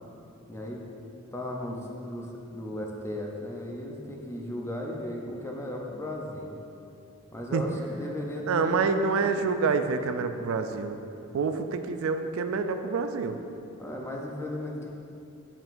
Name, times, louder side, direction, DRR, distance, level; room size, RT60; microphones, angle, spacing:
voice 1, 0.5-0.8 1.3-6.6 7.3-8.7 8.9-9.1 9.4-9.5 13.8-14.9, left 1 dB, 15° left, -1 dB, 0.6 m, -36 dB
voice 2, 8.5-11.0 11.3-13.4, right 4 dB, 75° right, 8 dB, 0.3 m, -27 dB
7.1 x 5.5 x 2.6 m, 2.7 s
head